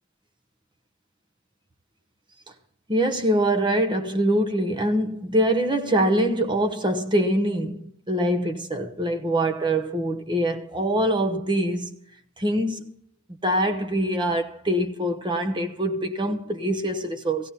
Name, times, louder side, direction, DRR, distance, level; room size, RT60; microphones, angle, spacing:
voice 1, 2.9-11.9 12.4-12.9 13.4-17.5, right 1 dB, 25° right, 0.9 m, -24 dB
16.5 x 16.0 x 2.9 m
head